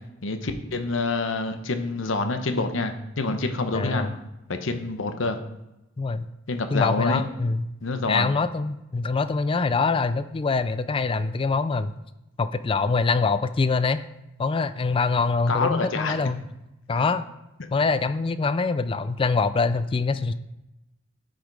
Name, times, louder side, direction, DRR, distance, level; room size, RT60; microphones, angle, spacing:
voice 1, 0.2-4.1 4.5-5.4 6.5-7.2 7.8-8.3 15.5-16.2 16.9-17.1, left 3 dB, 65° left, 7 dB, 0.8 m, -27 dB
voice 2, 3.7-4.2 6.0-6.3 6.7-7.7 8.1-11.9 12.4-14.0 14.4-16.5 16.9-17.2 17.7-20.3, left 4 dB, 25° left, 12 dB, 0.3 m, -24 dB
9.0 x 5.1 x 4.7 m, 0.92 s
head